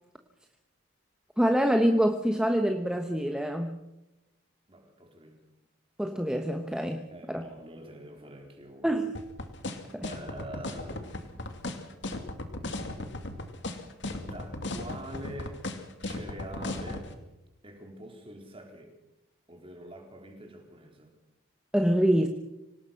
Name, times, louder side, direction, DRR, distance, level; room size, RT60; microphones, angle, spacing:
voice 1, 1.4-3.8 6.0-7.5 8.8-9.1 9.9-10.1 21.7-22.3, equal, 5° right, 5 dB, 1.1 m, -26 dB
voice 2, 4.7-5.5 7.1-9.0 10.0-11.5 14.2-15.6 16.0-17.1 17.6-18.9 19.5-21.1, right 1 dB, 25° right, 3 dB, 4.1 m, -45 dB
sound 1, 9.1-17.1, left 2 dB, 55° left, 2.5 m, -35 dB
25.5 x 18.5 x 5.9 m, 0.95 s
head